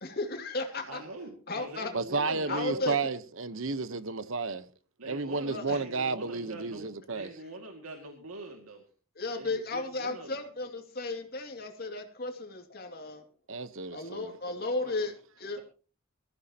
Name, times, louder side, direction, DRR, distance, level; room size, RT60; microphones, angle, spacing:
voice 1, 0.0-1.0 1.5-1.9 2.5-3.0 5.4-5.8 9.2-13.2 13.9-15.6, left 2 dB, 45° left, 2.5 m, -34 dB
voice 2, 0.8-2.8 5.0-8.8 9.3-10.4 14.8-14.9 15.5-15.6, right 2 dB, 85° right, 2.3 m, -44 dB
voice 3, 1.9-4.6 5.1-7.3 13.5-14.3, right 3 dB, 65° right, 1.0 m, -32 dB
22.0 x 14.5 x 2.9 m
head